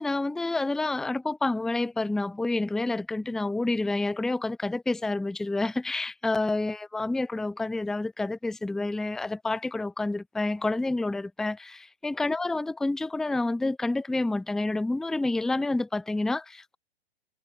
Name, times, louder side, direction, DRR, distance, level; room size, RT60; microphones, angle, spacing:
voice 1, 0.0-16.8, left 2 dB, ahead, 0.5 m, -28 dB
figure-of-eight pair, 115°, 31 cm